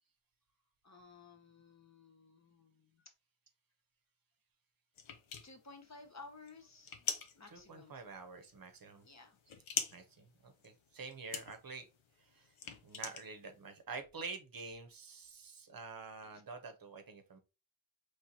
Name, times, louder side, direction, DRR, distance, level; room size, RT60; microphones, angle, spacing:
voice 1, 0.8-3.0 5.4-7.9 9.0-9.4 16.2-16.4, left 3 dB, 35° left, 0.7 m, -56 dB
sound 1, 5.0-13.8, left 7 dB, 70° left, 0.7 m, -44 dB
voice 2, 7.5-9.0 9.9-11.9 12.3-12.5 12.8-17.4, right 4 dB, 45° right, 0.8 m, -48 dB
4.4 x 3.2 x 2.8 m
wide cardioid pair, 105°, 50 cm